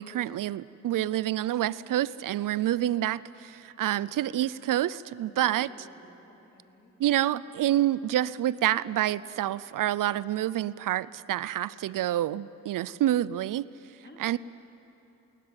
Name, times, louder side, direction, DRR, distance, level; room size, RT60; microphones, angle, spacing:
voice 1, 0.0-5.7 7.0-13.7 14.2-14.4, right 13 dB, 70° right, 20 dB, 0.5 m, -28 dB
voice 2, 5.2-6.9 14.0-14.4, left 1 dB, 35° left, 1 dB, 4.0 m, -53 dB
21.0 x 20.0 x 9.7 m, 2.9 s
cardioid pair, 80°, 33 cm